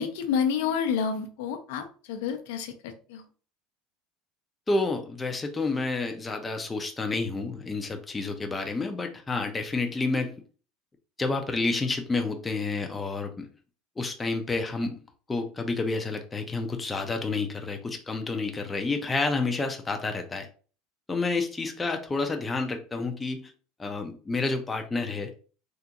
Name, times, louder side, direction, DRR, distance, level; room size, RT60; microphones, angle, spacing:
voice 1, 0.0-3.2, left 7 dB, 85° left, 6 dB, 0.6 m, -29 dB
voice 2, 4.7-10.4 11.2-13.5 14.0-15.0 15.3-20.5 21.1-23.5 23.8-25.3, left 3 dB, 15° left, 4 dB, 0.5 m, -29 dB
3.7 x 2.4 x 2.8 m, 0.38 s
cardioid pair, 145°, 0 cm